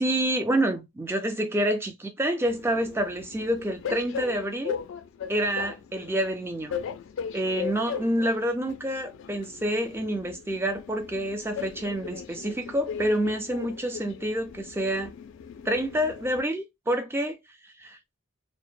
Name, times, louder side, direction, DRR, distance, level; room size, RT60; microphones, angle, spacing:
voice 1, 0.0-4.8 5.3-6.8 7.3-15.1 15.6-17.4 17.6-18.0, right 1 dB, 10° right, 0.3 m, -28 dB
Train, 2.4-16.4, left 7 dB, 70° left, 0.3 m, -38 dB
2.1 x 2.0 x 3.1 m
head